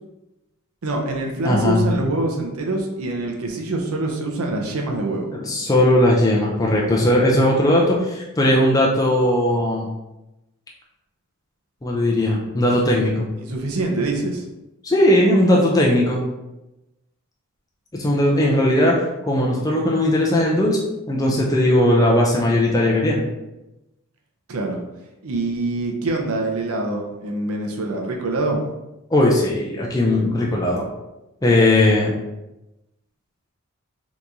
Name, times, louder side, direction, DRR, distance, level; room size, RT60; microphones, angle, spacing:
voice 1, 0.8-5.3 13.4-14.4 24.5-24.8 25.2-28.6, right 2 dB, 75° right, 1 dB, 0.6 m, -25 dB
voice 2, 1.4-1.8 5.3-9.9 11.8-13.3 14.8-16.2 17.9-19.0 19.3-20.8 21.1-23.3 29.1-30.9 31.4-32.1, left 1 dB, 15° left, -3 dB, 0.4 m, -18 dB
2.9 x 2.6 x 3.5 m, 0.97 s
head